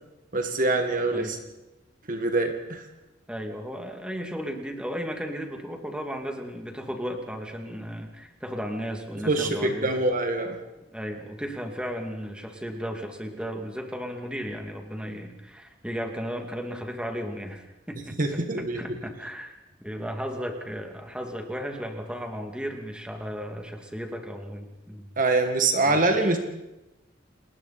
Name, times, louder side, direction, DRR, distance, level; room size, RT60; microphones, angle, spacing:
voice 1, 0.3-1.4 2.1-2.9 9.2-10.6 18.2-19.0 25.2-26.4, right 2 dB, 45° right, 5 dB, 2.0 m, -24 dB
voice 2, 3.3-9.9 10.9-18.2 18.7-19.5 19.8-25.1 25.8-26.4, equal, 5° right, 3 dB, 2.5 m, -35 dB
29.5 x 20.5 x 4.3 m, 0.96 s
head